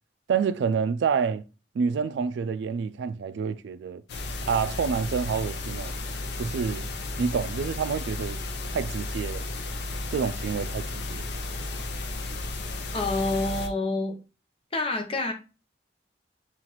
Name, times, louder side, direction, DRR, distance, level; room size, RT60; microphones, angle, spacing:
voice 1, 0.3-1.4 1.7-4.0 4.5-5.9 6.4-6.9 7.2-8.4 8.7-9.4 10.1-11.2, right 6 dB, 80° right, 0.3 m, -28 dB
sound 1, 4.1-13.7, left 2 dB, 65° left, 0.6 m, -33 dB
voice 2, 12.9-14.2 14.7-15.3, left 2 dB, 30° left, 0.7 m, -27 dB
5.6 x 2.4 x 3.0 m
head